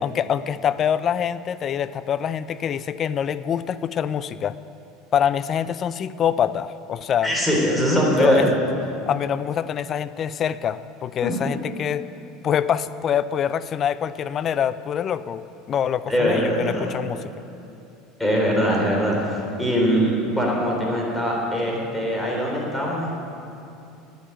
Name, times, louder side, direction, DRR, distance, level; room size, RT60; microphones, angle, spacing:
voice 1, 0.0-4.6 5.1-7.3 8.2-8.5 9.1-12.1 12.4-17.2, left 9 dB, 40° left, 15 dB, 0.4 m, -25 dB
voice 2, 7.2-8.5 11.2-11.3 16.1-16.9 18.2-23.2, equal, 5° left, -2 dB, 3.7 m, -22 dB
9.4 x 8.8 x 8.9 m, 2.6 s
hypercardioid pair, 90°, 0 cm